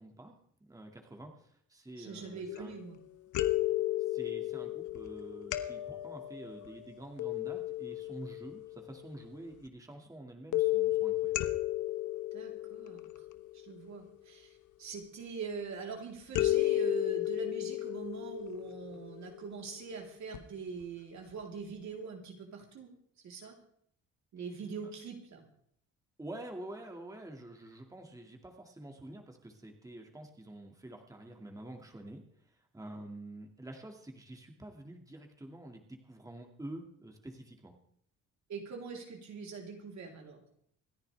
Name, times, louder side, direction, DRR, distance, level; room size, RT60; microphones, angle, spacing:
voice 1, 0.0-2.8 4.0-11.5 26.2-37.8, right 1 dB, 10° right, 2 dB, 2.2 m, -48 dB
voice 2, 2.0-3.0 12.3-13.2 13.5-22.9 23.2-23.5 24.3-25.4 38.5-40.4, right 5 dB, 65° right, 0 dB, 3.7 m, -43 dB
sound 1, 2.5-3.0 3.3-8.9 10.5-13.8 16.3-19.6 20.3-20.4 20.8-20.9, left 16 dB, 85° left, 1.0 m, -33 dB
27.0 x 10.5 x 3.5 m, 0.66 s
cardioid pair, 90°, 30 cm